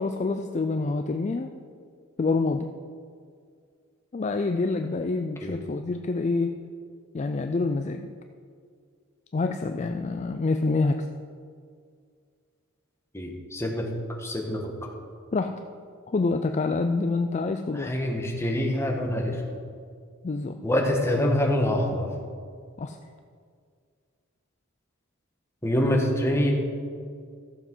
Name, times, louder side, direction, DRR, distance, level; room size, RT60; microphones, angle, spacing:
voice 1, 0.0-1.5 2.2-2.7 4.1-6.5 7.1-8.1 9.3-11.1 15.3-15.5 16.1-17.9 20.2-20.6 22.8-23.0, left 3 dB, 35° left, 7 dB, 0.4 m, -27 dB
voice 2, 13.1-13.9 14.2-14.6 17.7-19.4 20.6-22.1 25.6-26.5, left 1 dB, 10° left, 0 dB, 1.4 m, -25 dB
13.5 x 7.2 x 5.4 m, 2.1 s
head